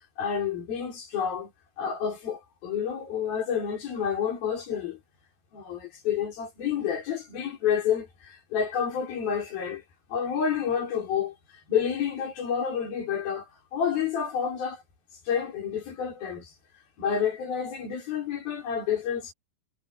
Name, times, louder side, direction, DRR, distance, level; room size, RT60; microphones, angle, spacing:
voice 1, 0.2-1.5 1.8-5.0 5.5-9.8 10.1-11.3 11.7-14.8 15.3-16.5 17.0-19.3, left 7 dB, 75° left, 6.7 m, -29 dB
omnidirectional pair, 4.3 m